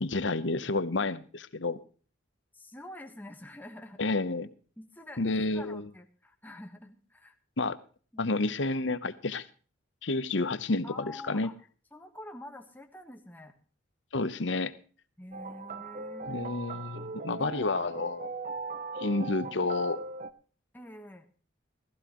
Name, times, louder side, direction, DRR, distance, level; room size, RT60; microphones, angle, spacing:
voice 1, 0.0-1.8 4.0-4.5 5.2-5.8 7.6-7.8 8.2-9.5 10.0-11.5 14.1-14.7 16.3-18.3 19.0-20.0, left 3 dB, 65° left, 14 dB, 0.9 m, -30 dB
voice 2, 2.5-4.1 4.8-7.3 8.1-8.3 10.8-11.6 11.9-13.6 15.2-16.5 17.3-17.9 20.7-21.3, left 1 dB, 10° left, 5 dB, 1.2 m, -47 dB
sound 1, 15.3-20.3, right 4 dB, 40° right, 0.6 m, -39 dB
15.5 x 15.0 x 3.0 m, 0.38 s
head